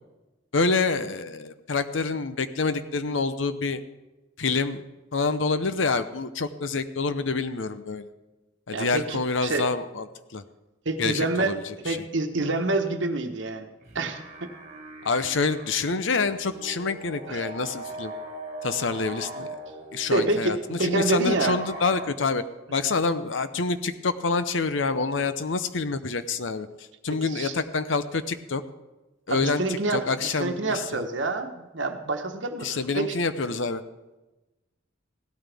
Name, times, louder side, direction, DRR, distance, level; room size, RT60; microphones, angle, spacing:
voice 1, 0.5-3.8 4.4-4.8 5.1-8.1 8.7-10.0 10.3-10.4 11.0-12.0 15.0-18.1 18.6-19.6 19.9-22.4 22.7-28.6 29.3-29.6 29.9-31.0 32.6-33.8, left 4 dB, 65° left, 12 dB, 0.7 m, -27 dB
voice 2, 8.7-9.7 10.8-11.6 11.8-13.7 13.9-14.2 17.3-17.5 20.1-21.6 27.3-27.5 29.3-33.2, right 2 dB, 60° right, 6 dB, 1.2 m, -27 dB
sound 1, 13.8-22.1, right 2 dB, 35° right, 1.7 m, -40 dB
16.5 x 13.0 x 3.5 m, 1.1 s
head